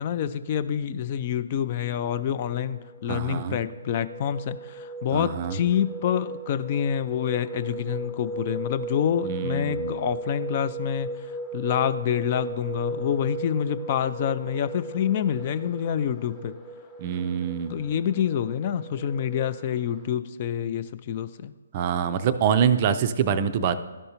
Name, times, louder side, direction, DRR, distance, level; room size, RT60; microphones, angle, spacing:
voice 1, 0.0-11.1 11.5-16.5 17.7-21.5, left 9 dB, 35° left, 13 dB, 0.3 m, -27 dB
sound 1, 2.3-20.1, right 2 dB, 15° left, 0.8 m, -37 dB
voice 2, 3.1-3.6 5.1-5.6 9.2-10.1 17.0-17.7 21.7-23.8, right 8 dB, 35° right, 11 dB, 0.4 m, -25 dB
12.0 x 5.4 x 2.9 m, 1.2 s
figure-of-eight pair, 140°, 0 cm